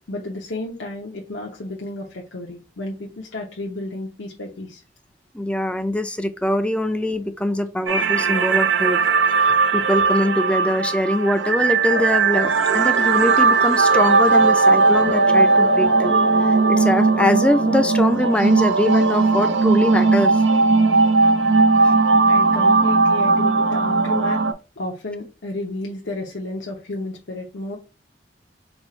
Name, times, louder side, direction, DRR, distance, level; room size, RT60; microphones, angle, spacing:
voice 1, 0.1-4.8 22.3-24.4 24.8-27.8, left 2 dB, 80° left, 0.9 m, -32 dB
voice 2, 5.3-9.0 9.4-20.4 21.8-21.9, left 1 dB, 5° left, 0.5 m, -23 dB
sound 1, 7.9-24.5, right 3 dB, 90° right, 0.6 m, -17 dB
4.4 x 2.4 x 4.3 m
head